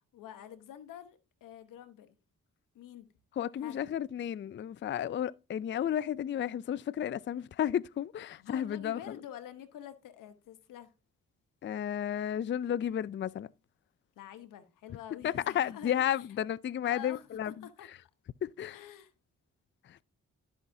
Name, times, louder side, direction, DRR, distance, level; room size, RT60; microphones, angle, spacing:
voice 1, 0.1-2.2 2.7-3.1 3.6-3.8 8.4-10.9 14.2-16.0 16.8-17.9 18.7-19.1, left 10 dB, 85° left, 1.0 m, -47 dB
voice 2, 3.4-9.2 11.6-13.5 15.2-17.7 18.4-18.8 19.8-20.0, left 10 dB, 40° left, 0.4 m, -33 dB
12.5 x 5.7 x 2.7 m
supercardioid pair, 50°, 32 cm